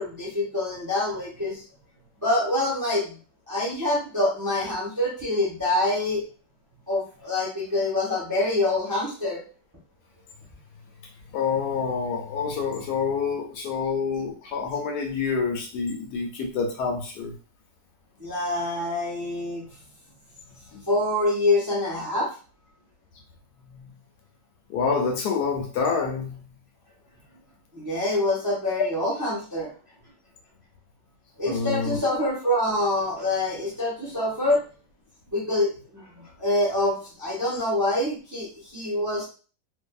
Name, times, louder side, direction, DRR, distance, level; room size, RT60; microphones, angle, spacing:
voice 1, 0.0-1.6 2.2-3.2 3.5-6.2 6.9-9.4 18.2-19.7 20.9-22.3 27.7-29.7 31.4-34.6 35.3-39.3, left 1 dB, 20° right, -5 dB, 0.6 m, -26 dB
voice 2, 11.3-17.3 20.7-20.8 23.7-23.8 24.7-26.3 31.5-32.0, left 5 dB, 75° left, 2 dB, 1.1 m, -27 dB
2.6 x 2.5 x 2.3 m, 0.37 s
omnidirectional pair, 1.9 m